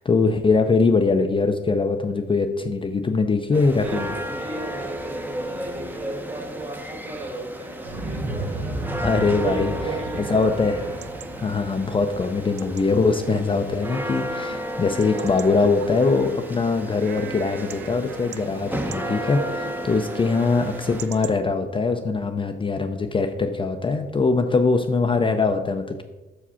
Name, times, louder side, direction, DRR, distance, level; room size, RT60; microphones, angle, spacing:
voice 1, 0.0-4.1 9.0-9.7 10.1-10.8 11.4-26.0, left 4 dB, 25° left, 6 dB, 0.5 m, -22 dB
sound 1, 3.5-21.1, equal, 10° right, 0.7 m, -33 dB
voice 2, 3.5-8.9 9.2-10.5, right 1 dB, 30° right, 4 dB, 1.6 m, -37 dB
Explosion, 7.8-13.9 14.2-14.3, right 2 dB, 85° right, 1.3 m, -34 dB
Chatter / Bark / Livestock farm animals working animals, 9.2-21.4, right 8 dB, 60° right, 0.4 m, -39 dB
5.8 x 4.9 x 5.6 m, 1.1 s
cardioid pair, 90°, 20 cm